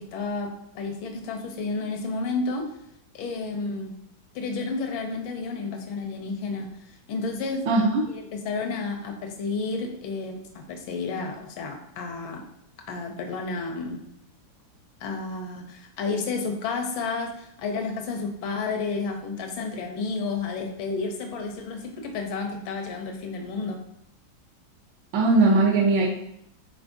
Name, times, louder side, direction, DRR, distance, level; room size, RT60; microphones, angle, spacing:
voice 1, 0.0-2.7 3.1-3.9 4.3-7.7 8.1-12.5 12.9-14.0 15.0-23.8, left 4 dB, 90° left, 3 dB, 1.7 m, -31 dB
voice 2, 7.7-8.1 25.1-26.1, right 3 dB, 75° right, -2 dB, 1.6 m, -19 dB
10.5 x 4.4 x 2.6 m, 0.75 s
omnidirectional pair, 2.1 m